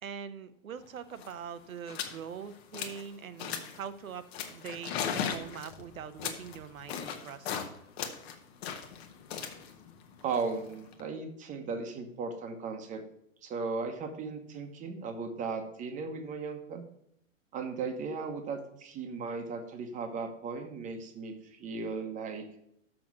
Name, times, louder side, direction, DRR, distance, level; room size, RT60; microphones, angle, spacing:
voice 1, 0.0-7.6, right 7 dB, 85° right, 12 dB, 0.9 m, -43 dB
sound 1, 0.8-0.9 1.1-1.4 1.9-2.2 2.5-3.1 3.4-3.8 4.3-7.7 8.0-11.0, left 7 dB, 50° left, 1.2 m, -37 dB
voice 2, 10.2-13.0 13.4-16.8 17.5-22.4, right 4 dB, 20° right, 5 dB, 1.0 m, -36 dB
6.2 x 6.0 x 6.0 m, 0.75 s
hypercardioid pair, 130°, 40 cm